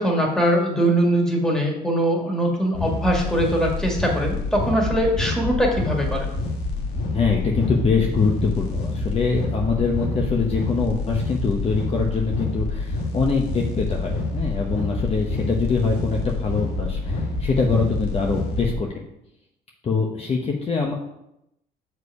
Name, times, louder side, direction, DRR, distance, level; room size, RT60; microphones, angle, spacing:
voice 1, 0.0-6.3, right 1 dB, 5° left, -1 dB, 1.9 m, -22 dB
sound 1, 2.7-18.7, left 2 dB, 80° left, 1.5 m, -27 dB
voice 2, 7.1-19.0 19.8-20.9, left 4 dB, 35° left, 0 dB, 0.9 m, -24 dB
6.7 x 4.7 x 4.8 m, 0.82 s
cardioid pair, 110°, 17 cm